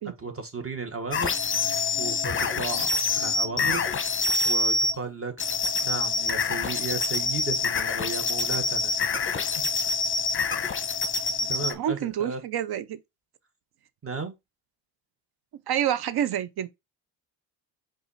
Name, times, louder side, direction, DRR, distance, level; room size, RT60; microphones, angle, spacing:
voice 1, 0.2-1.6 2.0-3.8 4.4-5.4 5.8-9.0 11.5-12.4 14.0-14.3, right 4 dB, 30° right, 1.3 m, -34 dB
sound 1, 1.1-4.9 5.4-11.7, left 3 dB, 25° left, 0.8 m, -26 dB
voice 2, 11.4-13.0 15.7-16.7, right 10 dB, 55° right, 0.7 m, -28 dB
4.8 x 2.6 x 4.0 m
supercardioid pair, 70°, 46 cm